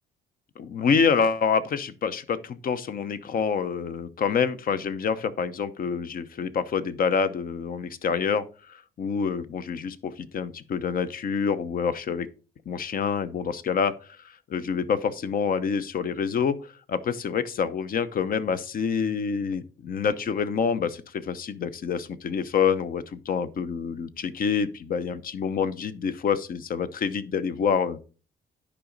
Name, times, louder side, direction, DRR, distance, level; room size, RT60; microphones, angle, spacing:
voice 1, 0.6-12.3 12.7-28.0, left 6 dB, 50° left, 0.8 m, -27 dB
10.0 x 5.1 x 3.9 m
cardioid pair, 110°, 18 cm